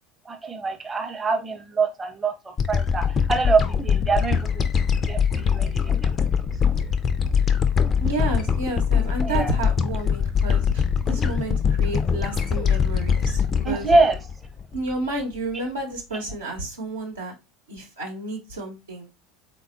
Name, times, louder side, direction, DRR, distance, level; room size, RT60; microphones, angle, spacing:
voice 1, 0.3-4.7 5.1-6.1 9.2-9.5 13.6-14.2, right 3 dB, 20° right, 0.7 m, -24 dB
sound 1, 2.6-15.1, left 7 dB, 30° left, 0.4 m, -23 dB
voice 2, 8.0-13.9 14.7-17.3 17.7-19.1, right 2 dB, 80° right, 0.9 m, -31 dB
3.4 x 2.2 x 2.4 m
figure-of-eight pair, 75°, 0 cm